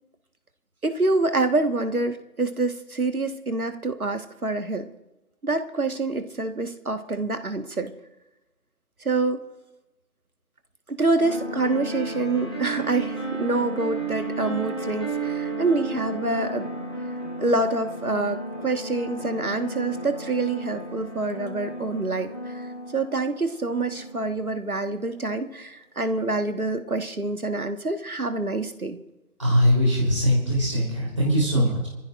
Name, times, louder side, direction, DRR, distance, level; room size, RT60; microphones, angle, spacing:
voice 1, 0.8-4.9 5.4-7.9 9.0-9.5 10.9-16.7 17.4-22.7 22.9-29.0 31.5-31.7, right 2 dB, 70° right, 8 dB, 1.6 m, -26 dB
Marianna Piano Melody, 11.2-24.7, right 2 dB, 15° left, 1.8 m, -33 dB
voice 2, 29.4-31.9, equal, 20° right, -4 dB, 3.5 m, -21 dB
25.5 x 15.0 x 2.5 m, 1.0 s
figure-of-eight pair, 170°, 45 cm